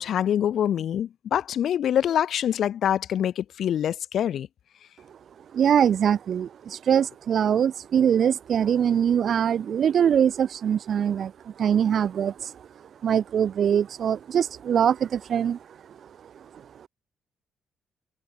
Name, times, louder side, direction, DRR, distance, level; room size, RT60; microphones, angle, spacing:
voice 1, 0.0-4.5, left 10 dB, 65° left, 4.0 m, -25 dB
voice 2, 5.5-12.7 13.0-15.6 16.5-16.9, right 8 dB, 60° right, 5.1 m, -23 dB
cardioid pair, 90°, 0 cm